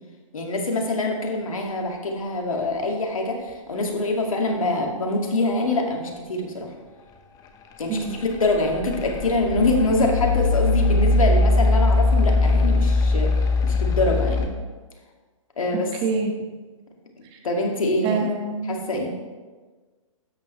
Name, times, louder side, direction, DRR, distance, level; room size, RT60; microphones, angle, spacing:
voice 1, 0.3-6.7 7.8-13.3 13.6-14.5 15.6-15.9 17.4-18.3 18.6-19.1, left 2 dB, 80° left, 1 dB, 2.2 m, -24 dB
sound 1, 8.1-14.5, left 2 dB, 20° left, 0.9 m, -20 dB
voice 2, 16.0-16.3 18.0-18.8, right 3 dB, 25° right, 3 dB, 1.5 m, -25 dB
12.5 x 8.6 x 3.2 m, 1.4 s
hypercardioid pair, 135°, 17 cm